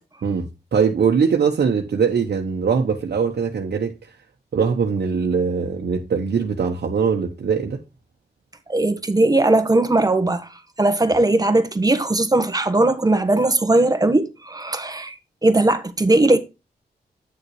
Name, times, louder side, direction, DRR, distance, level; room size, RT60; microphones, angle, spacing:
voice 1, 0.7-3.9 4.5-7.8, right 6 dB, 70° right, 1.2 m, -21 dB
voice 2, 8.7-10.5 10.8-15.1 15.4-16.4, right 2 dB, 20° right, 1.3 m, -18 dB
9.8 x 6.8 x 3.2 m
cardioid pair, 85°, 17 cm